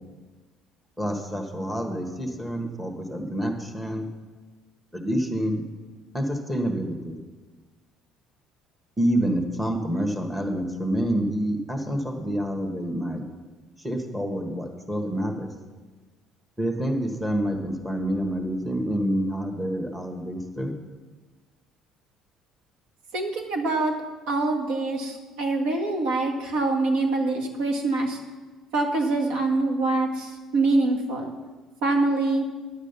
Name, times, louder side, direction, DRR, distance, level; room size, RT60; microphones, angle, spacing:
voice 1, 1.0-4.1 4.9-5.6 6.1-7.2 9.0-13.2 13.8-15.5 16.6-20.7, equal, 5° right, 3 dB, 1.2 m, -27 dB
voice 2, 23.1-23.9 24.3-28.2 28.7-31.3 31.8-32.4, right 2 dB, 85° right, 2 dB, 1.7 m, -24 dB
10.0 x 7.3 x 6.8 m, 1.3 s
cardioid pair, 145°, 0 cm